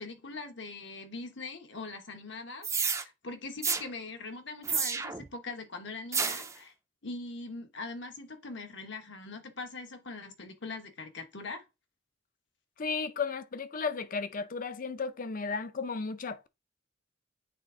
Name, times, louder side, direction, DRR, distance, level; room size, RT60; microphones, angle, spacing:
voice 1, 0.0-2.7 3.0-6.7 7.0-11.6, left 3 dB, 65° left, 1.2 m, -42 dB
sound 1, 2.6-3.0 3.6-3.8 4.6-5.3 6.1-6.5, right 5 dB, 15° right, 0.5 m, -30 dB
voice 2, 12.8-16.5, left 4 dB, 45° left, 0.6 m, -34 dB
8.5 x 3.4 x 3.8 m
head